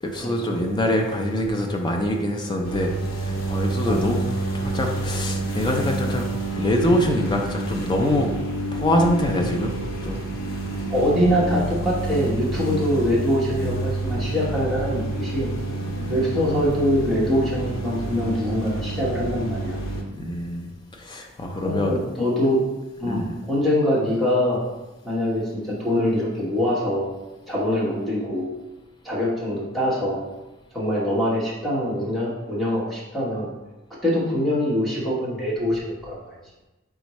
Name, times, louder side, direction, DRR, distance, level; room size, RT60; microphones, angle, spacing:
voice 1, 0.0-2.9 3.2-4.2 4.5-6.2 6.5-8.3 8.7-9.8 10.0-10.2 15.9-16.1 20.1-20.7 20.9-22.0 23.1-23.3, left 1 dB, 20° left, 2 dB, 0.5 m, -24 dB
sound 1, 2.6-20.0, right 2 dB, 80° left, 0.7 m, -29 dB
voice 2, 10.9-15.5 16.1-19.8 21.6-22.6 23.0-24.6 25.0-27.1 27.5-28.5 29.0-30.2 30.7-33.5 34.0-36.2, equal, ahead, -7 dB, 1.0 m, -23 dB
4.3 x 3.6 x 3.0 m, 1.1 s
head